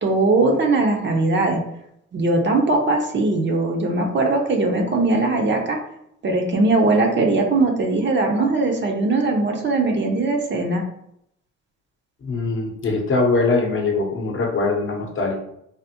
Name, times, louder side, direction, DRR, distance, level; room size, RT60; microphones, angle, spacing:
voice 1, 0.0-1.6 2.1-5.8 6.2-10.8, right 2 dB, 40° right, 2 dB, 0.6 m, -20 dB
voice 2, 12.2-15.4, left 3 dB, 45° left, 1 dB, 0.7 m, -22 dB
3.4 x 2.0 x 2.8 m, 0.76 s
cardioid pair, 90°, 30 cm